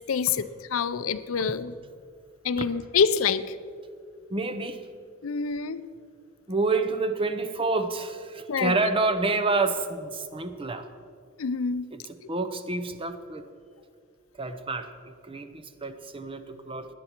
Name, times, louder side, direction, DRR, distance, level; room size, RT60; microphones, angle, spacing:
voice 1, 0.1-1.7 2.4-3.5 5.2-5.8 8.5-8.7 11.4-11.9, left 6 dB, 85° left, 14 dB, 0.5 m, -26 dB
voice 2, 4.3-4.8 6.5-10.9 11.9-13.5 14.4-16.9, right 3 dB, 25° right, 9 dB, 0.7 m, -28 dB
17.0 x 11.0 x 4.5 m, 2.2 s
head